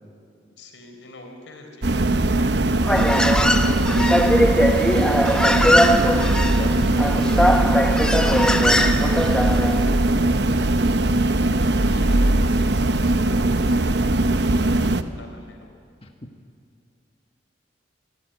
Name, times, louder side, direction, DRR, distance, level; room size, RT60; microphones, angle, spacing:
voice 1, 0.6-3.3 4.6-4.7 8.7-9.2 10.3-10.8 11.3-14.6 15.2-15.6, left 2 dB, 80° left, 3 dB, 4.2 m, -45 dB
sound 1, 1.8-15.0, right 2 dB, 60° right, 0.9 m, -20 dB
Human voice, 2.8-9.9, equal, 5° left, 0.8 m, -20 dB
voice 2, 3.4-4.2 5.7-6.1 6.5-7.6 16.0-16.1, left 1 dB, 30° left, 2 dB, 1.3 m, -33 dB
25.5 x 15.0 x 9.1 m, 2.4 s
head